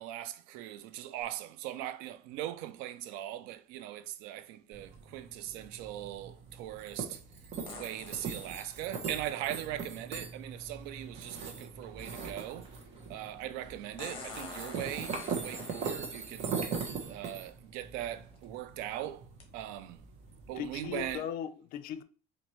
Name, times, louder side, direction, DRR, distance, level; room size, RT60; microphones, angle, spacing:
voice 1, 0.0-7.2 7.7-12.7 13.1-16.5 17.1-19.2 19.5-20.0 20.5-21.2, right 13 dB, 85° right, 0.4 m, -40 dB
sound 1, 1.2-1.3 7.7-8.6 10.6-10.7 14.0-16.5 17.4-17.5 18.2-18.4 19.4-19.5, left 4 dB, 35° left, 1.2 m, -46 dB
sound 2, 4.7-21.1, right 5 dB, 45° right, 0.9 m, -41 dB
sound 3, 8.7-17.3, right 3 dB, 25° right, 1.2 m, -53 dB
voice 2, 20.5-22.0, left 9 dB, 65° left, 0.5 m, -38 dB
4.2 x 2.6 x 3.0 m
cardioid pair, 125°, 16 cm